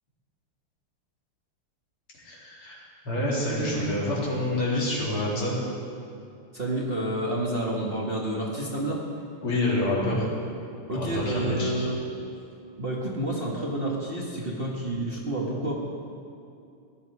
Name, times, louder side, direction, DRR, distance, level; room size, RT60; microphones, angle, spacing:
voice 1, 2.2-5.5 9.4-10.3 10.9-11.9, left 1 dB, 75° left, -6 dB, 3.9 m, -27 dB
voice 2, 6.5-9.0 10.9-12.0 12.8-15.7, right 1 dB, 30° right, -3 dB, 1.5 m, -29 dB
18.0 x 11.0 x 4.8 m, 2.5 s
omnidirectional pair, 2.4 m